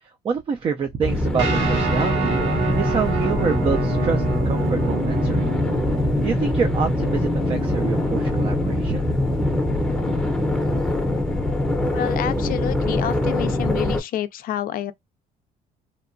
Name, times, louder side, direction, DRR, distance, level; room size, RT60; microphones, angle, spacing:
voice 1, 0.0-5.5 6.2-9.1, right 6 dB, 30° right, 0.4 m, -27 dB
sound 1, 1.0-14.0, left 1 dB, 5° left, 0.6 m, -23 dB
Guitar, 1.4-10.8, right 5 dB, 85° right, 1.4 m, -29 dB
voice 2, 11.9-14.9, left 11 dB, 60° left, 0.4 m, -28 dB
2.8 x 2.1 x 2.5 m
cardioid pair, 110°, 17 cm